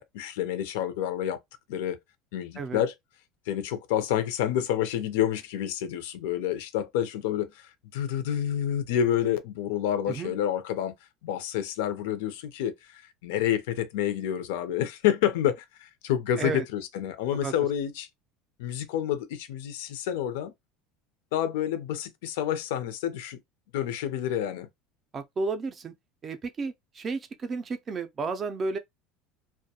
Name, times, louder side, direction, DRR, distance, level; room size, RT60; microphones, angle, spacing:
voice 1, 0.0-1.4 1.7-2.0 2.3-2.9 3.5-10.9 11.2-18.1 18.6-20.5 21.3-23.4 23.7-24.7, left 10 dB, 90° left, 0.5 m, -29 dB
voice 2, 25.1-25.9 26.2-28.8, right 4 dB, 25° right, 0.4 m, -32 dB
2.2 x 2.1 x 2.8 m
cardioid pair, 160°, 0 cm